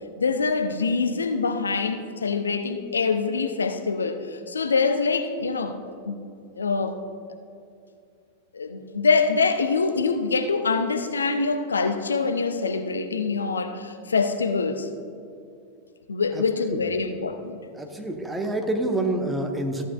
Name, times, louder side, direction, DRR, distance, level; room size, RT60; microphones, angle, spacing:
voice 1, 0.2-5.8 6.0-6.2 6.5-7.0 8.5-14.9 16.1-17.6, left 4 dB, 75° left, 7 dB, 0.5 m, -24 dB
voice 2, 17.8-19.8, right 1 dB, 10° right, 4 dB, 0.9 m, -27 dB
13.5 x 7.4 x 2.4 m, 2.4 s
figure-of-eight pair, 90°, 0 cm